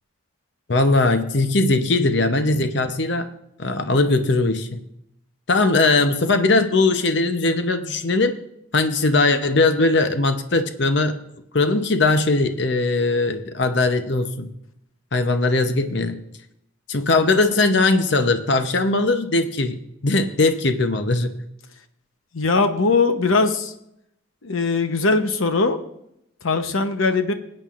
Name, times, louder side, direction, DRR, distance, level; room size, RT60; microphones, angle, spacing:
voice 1, 0.7-3.3 3.6-4.8 5.5-8.4 8.7-11.2 11.5-14.5 15.1-16.2 16.9-19.8 20.0-21.3, left 3 dB, 55° left, 8 dB, 0.8 m, -20 dB
voice 2, 22.3-23.7 24.4-25.8 26.4-27.3, left 3 dB, 80° left, 8 dB, 0.9 m, -20 dB
19.5 x 8.8 x 2.5 m, 0.78 s
head